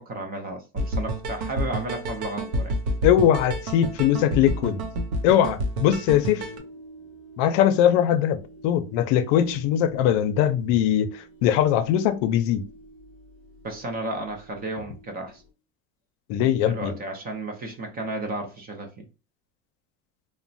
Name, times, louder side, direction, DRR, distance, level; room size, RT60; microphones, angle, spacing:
voice 1, 0.0-2.8 13.6-15.4 16.6-19.1, right 2 dB, 25° right, 0.4 m, -33 dB
sound 1, 0.8-6.6, right 1 dB, 85° right, 0.7 m, -29 dB
voice 2, 3.0-4.8 5.2-6.5 7.4-12.6 16.3-16.9, left 10 dB, 85° left, 0.5 m, -21 dB
sound 2, 6.4-15.5, right 1 dB, 35° left, 0.6 m, -48 dB
2.9 x 2.0 x 2.5 m
cardioid pair, 150°, 37 cm